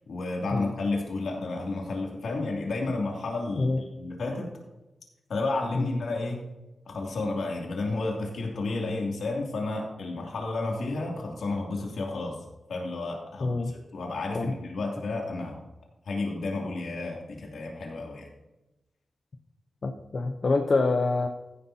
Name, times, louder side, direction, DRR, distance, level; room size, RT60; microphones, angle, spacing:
voice 1, 0.1-4.5 5.3-6.5 6.9-12.4 12.7-15.6 16.0-18.3, left 3 dB, 75° left, -1 dB, 2.7 m, -31 dB
voice 2, 13.4-13.7 14.3-14.5 19.8-21.3, left 3 dB, 45° left, 4 dB, 0.7 m, -26 dB
15.0 x 11.0 x 2.8 m, 1.0 s
wide cardioid pair, 135°, 0 cm